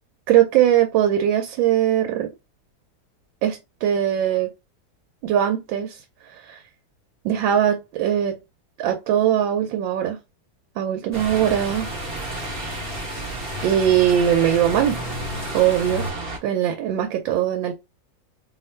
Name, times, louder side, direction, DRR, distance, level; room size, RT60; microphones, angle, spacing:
voice 1, 0.3-2.3 3.4-4.5 5.2-6.0 6.3-6.6 7.2-8.4 8.8-10.2 10.8-11.9 13.6-15.0 15.5-16.0 16.4-17.7, right 10 dB, 80° right, 1.3 m, -20 dB
sound 1, 11.1-16.1, left 2 dB, 85° left, 0.3 m, -35 dB
sound 2, 11.1-16.4, right 2 dB, 50° right, 0.7 m, -32 dB
3.0 x 2.4 x 4.2 m
omnidirectional pair, 2.1 m